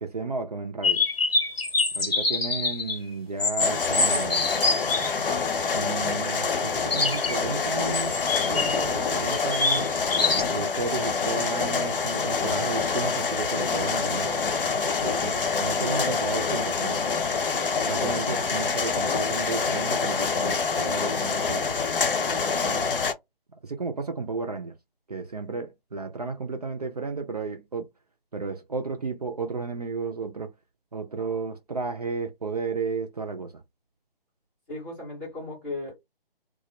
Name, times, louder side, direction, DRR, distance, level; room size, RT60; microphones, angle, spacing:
voice 1, 0.0-1.0 1.9-4.5 5.7-8.2 8.4-9.9 10.5-14.4 15.0-17.0 17.8-21.8 22.6-22.9 23.6-24.7 25.1-27.9 28.3-30.5 30.9-33.6, right 4 dB, 45° right, 0.4 m, -33 dB
sound 1, 0.8-3.0 3.4-5.1 6.9-7.4 7.9-8.9 9.3-10.4, left 3 dB, 85° left, 1.0 m, -25 dB
sound 2, 3.6-23.1, left 5 dB, 65° left, 0.6 m, -26 dB
voice 2, 34.7-35.9, left 2 dB, 10° left, 0.6 m, -36 dB
2.2 x 2.0 x 2.7 m
figure-of-eight pair, 150°, 29 cm